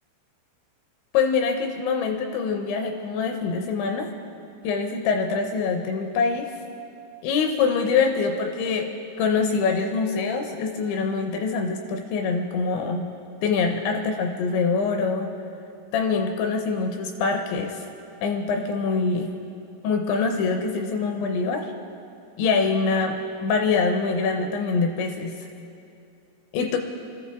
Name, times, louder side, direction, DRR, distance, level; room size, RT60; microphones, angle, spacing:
voice 1, 1.1-4.1 4.6-6.5 7.2-8.9 9.2-13.1 13.4-15.3 15.9-17.8 18.2-19.3 19.8-21.7 22.4-25.3 26.5-26.8, left 4 dB, 80° left, 4 dB, 2.7 m, -24 dB
25.5 x 13.5 x 3.5 m, 2.6 s
omnidirectional pair, 5.8 m